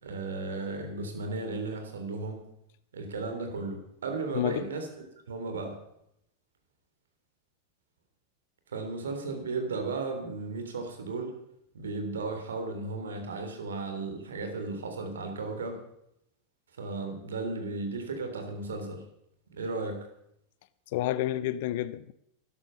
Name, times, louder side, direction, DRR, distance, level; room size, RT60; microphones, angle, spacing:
voice 1, 0.0-2.4 2.9-4.9 5.3-5.8 8.7-11.4 11.7-15.8 16.8-19.0 19.5-20.0, right 3 dB, 85° right, 3.5 m, -35 dB
voice 2, 4.3-4.7 20.9-22.1, left 13 dB, 65° left, 0.6 m, -29 dB
13.0 x 11.0 x 7.0 m
hypercardioid pair, 100°, 0 cm